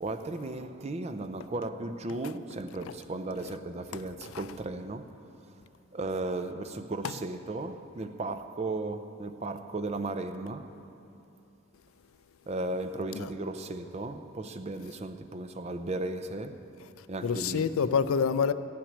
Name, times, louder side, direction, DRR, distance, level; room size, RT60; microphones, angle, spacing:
voice 1, 0.0-5.1 5.9-10.7 12.5-16.7 17.1-17.7, right 2 dB, 30° right, 0.5 m, -35 dB
voice 2, 3.9-4.3 7.0-7.1 13.1-13.3 17.0-18.5, left 6 dB, 80° left, 0.4 m, -28 dB
14.0 x 5.9 x 9.8 m
head